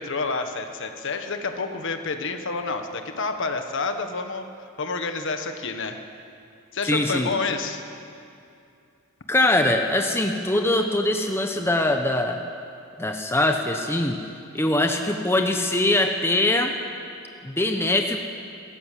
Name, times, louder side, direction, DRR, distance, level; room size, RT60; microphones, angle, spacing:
voice 1, 0.0-4.4 4.8-6.0 6.7-7.8, left 4 dB, 55° left, 6 dB, 1.5 m, -29 dB
voice 2, 6.8-7.3 9.3-12.4 13.0-14.2 14.5-16.7 17.4-18.2, left 1 dB, 10° left, 4 dB, 1.0 m, -22 dB
27.0 x 13.5 x 7.6 m, 2.5 s
head